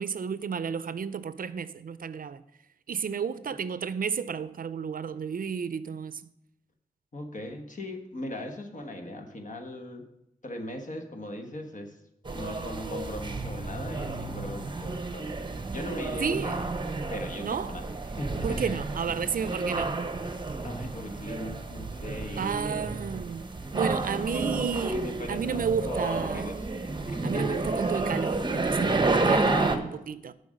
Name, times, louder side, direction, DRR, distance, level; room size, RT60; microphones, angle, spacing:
voice 1, 0.0-2.4 2.9-6.3 16.2-16.6 17.4-17.8 18.4-19.9 22.4-25.0 25.3-26.5 27.2-30.3, right 6 dB, 65° right, 0.4 m, -32 dB
voice 2, 7.1-10.1 10.4-12.0 12.3-16.6 17.1-17.9 18.2-18.7 20.6-22.9 24.3-26.7 27.1-27.6 29.4-29.9, left 1 dB, 55° left, 1.3 m, -38 dB
sound 1, 12.2-29.8, right 3 dB, 30° right, 0.8 m, -31 dB
7.8 x 5.2 x 6.4 m
wide cardioid pair, 90°, 16 cm